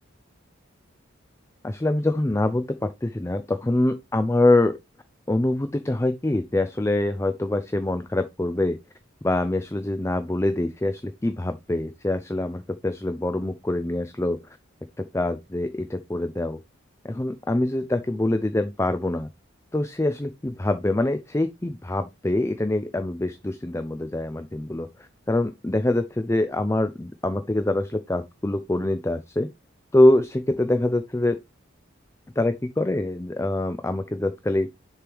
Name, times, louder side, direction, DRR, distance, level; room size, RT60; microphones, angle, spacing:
voice 1, 1.6-4.7 5.3-8.8 9.2-14.4 15.1-16.6 17.0-19.3 19.7-29.5 29.9-31.4 32.4-34.7, left 1 dB, 15° left, 0.4 m, -24 dB
6.9 x 4.6 x 3.4 m
head